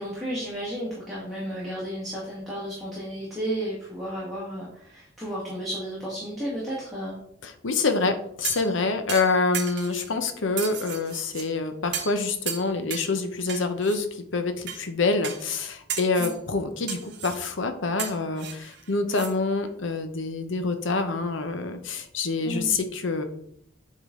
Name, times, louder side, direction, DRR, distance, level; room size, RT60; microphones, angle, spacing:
voice 1, 0.0-7.2 16.2-16.3 22.4-22.7, right 1 dB, ahead, -8 dB, 1.7 m, -33 dB
voice 2, 7.4-23.2, left 3 dB, 70° left, 7 dB, 0.8 m, -26 dB
sound 1, 8.4-8.7 9.1-10.1 10.6-11.5 11.9-12.2 12.5-13.1 13.5-14.0 14.7-14.8 15.2-15.6 15.9-16.4 16.9-17.4 18.0-19.3 19.7-19.8, right 8 dB, 55° right, 0.9 m, -34 dB
8.3 x 3.8 x 3.7 m, 0.70 s
head